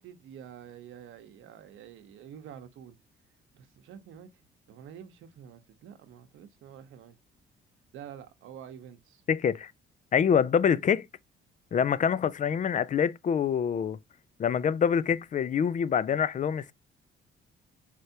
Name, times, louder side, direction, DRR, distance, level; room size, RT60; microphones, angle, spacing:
voice 1, 0.0-3.0 3.5-4.3 4.7-7.2 7.9-9.2, right 9 dB, 80° right, 0.8 m, -48 dB
voice 2, 9.3-9.7 10.1-11.1 11.7-14.0 14.4-16.7, left 7 dB, 40° left, 0.4 m, -25 dB
4.5 x 3.3 x 2.6 m
cardioid pair, 90°, 20 cm